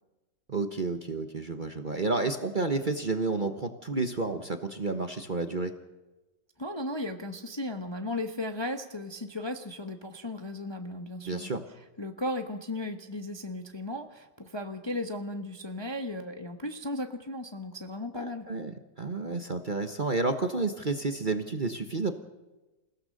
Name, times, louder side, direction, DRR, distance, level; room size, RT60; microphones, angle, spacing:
voice 1, 0.5-5.7 11.2-11.6 18.1-22.2, right 3 dB, 30° right, 6 dB, 1.0 m, -30 dB
voice 2, 6.6-11.5 12.0-18.5, left 1 dB, 20° left, 5 dB, 0.9 m, -36 dB
28.0 x 16.5 x 6.5 m, 1.1 s
omnidirectional pair, 1.9 m